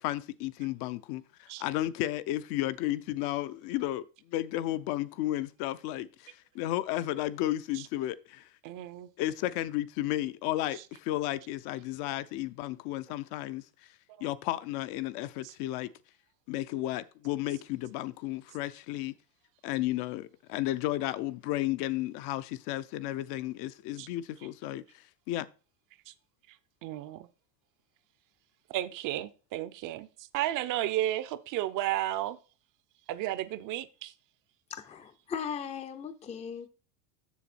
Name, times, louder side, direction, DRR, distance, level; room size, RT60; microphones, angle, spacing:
voice 1, 0.0-4.0 4.3-8.4 9.2-13.6 14.2-15.9 16.5-19.1 19.6-24.8 25.3-25.5, left 15 dB, 50° left, 0.7 m, -33 dB
voice 2, 8.6-9.1 10.7-10.8 15.4-15.5 24.0-24.1 26.1-26.2 26.8-27.3 28.7-30.1 30.3-32.4 33.1-34.1, right 14 dB, 40° right, 0.7 m, -33 dB
voice 3, 34.7-36.7, left 7 dB, 15° left, 0.6 m, -38 dB
7.2 x 6.7 x 4.2 m
supercardioid pair, 110°, 47 cm